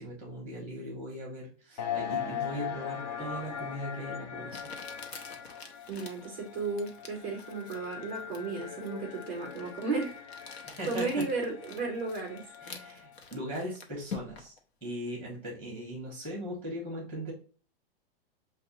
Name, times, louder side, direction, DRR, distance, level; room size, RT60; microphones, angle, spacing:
voice 1, 0.0-4.7 10.6-11.2 12.6-14.5 14.8-17.3, equal, 5° left, -3 dB, 1.1 m, -39 dB
sound 1, 1.8-13.2, left 8 dB, 45° left, 0.5 m, -40 dB
Crumpling crinkling, 3.6-3.7 4.5-14.6, left 5 dB, 85° left, 0.9 m, -47 dB
voice 2, 5.9-10.2 10.8-12.5, right 4 dB, 10° right, 0 dB, 0.3 m, -34 dB
6.5 x 2.3 x 2.7 m, 0.40 s
supercardioid pair, 175°, 31 cm